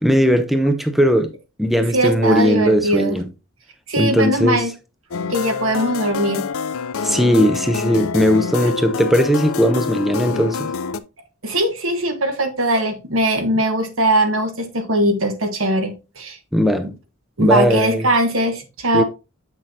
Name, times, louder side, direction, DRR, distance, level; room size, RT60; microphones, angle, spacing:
voice 1, 0.0-3.3 4.0-4.6 7.0-10.7 16.5-16.9 17.4-18.0 18.9-19.0, equal, ahead, 0.5 m, -18 dB
voice 2, 1.9-3.2 3.9-4.7 5.3-6.5 11.4-16.4 17.4-19.0, right 1 dB, 70° right, 1.4 m, -20 dB
sound 1, 5.1-11.0, left 5 dB, 70° left, 0.5 m, -26 dB
7.7 x 6.1 x 2.7 m
head